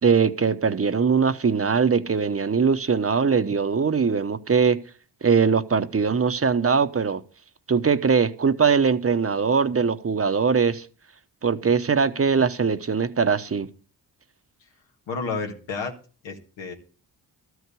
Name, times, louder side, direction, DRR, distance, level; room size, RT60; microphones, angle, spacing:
voice 1, 0.0-4.8 5.2-7.2 7.7-10.9 11.4-13.7, right 5 dB, 30° right, 0.9 m, -21 dB
voice 2, 15.1-15.9 16.2-16.7, left 4 dB, 85° left, 1.8 m, -31 dB
13.0 x 4.7 x 8.3 m
supercardioid pair, 55°, 44 cm